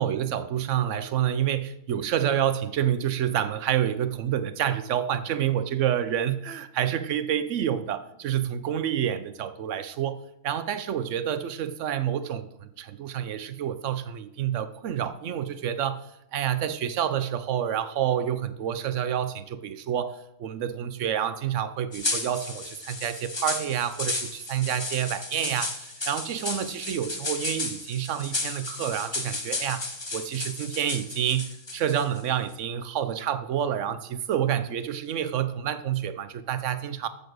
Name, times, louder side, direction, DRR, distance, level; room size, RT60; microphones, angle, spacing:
voice 1, 0.0-29.8 30.1-37.1, right 10 dB, 85° right, 1.0 m, -28 dB
sound 1, 21.9-32.2, left 2 dB, 25° left, 1.2 m, -33 dB
14.5 x 7.0 x 6.3 m
omnidirectional pair, 1.2 m